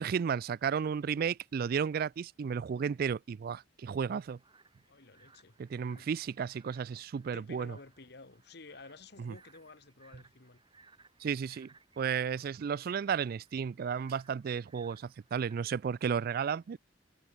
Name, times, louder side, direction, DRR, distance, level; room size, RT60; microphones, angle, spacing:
voice 1, 0.0-4.4 5.6-7.8 9.2-9.3 11.2-11.7 12.0-16.8, right 7 dB, 55° right, 0.3 m, -33 dB
sound 1, 4.1-15.9, right 4 dB, 25° right, 7.4 m, -64 dB
voice 2, 4.9-5.6 5.9-6.3 7.3-10.6 15.6-15.7, left 3 dB, 60° left, 1.7 m, -53 dB
head